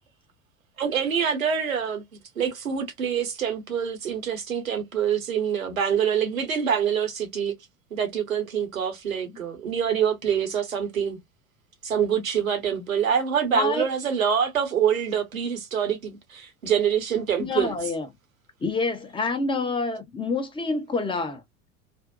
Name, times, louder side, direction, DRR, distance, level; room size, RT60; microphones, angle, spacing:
voice 1, 0.8-2.0 2.4-7.5 7.9-11.2 11.8-17.8, right 8 dB, 85° right, 0.9 m, -25 dB
voice 2, 17.4-18.1 18.6-21.4, left 3 dB, 15° left, 0.7 m, -27 dB
2.5 x 2.1 x 2.4 m
hypercardioid pair, 80°, 40 cm